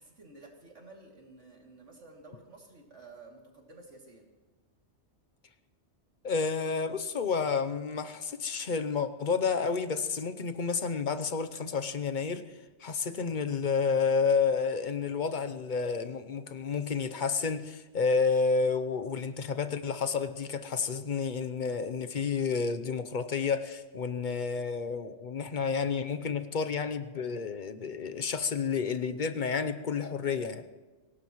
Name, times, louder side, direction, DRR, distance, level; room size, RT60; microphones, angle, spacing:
voice 1, 0.0-4.3, right 3 dB, 70° right, -1 dB, 3.1 m, -52 dB
voice 2, 6.2-12.4 12.8-30.6, left 5 dB, 45° left, 9 dB, 0.8 m, -30 dB
25.5 x 17.5 x 3.1 m, 1.2 s
omnidirectional pair, 1.3 m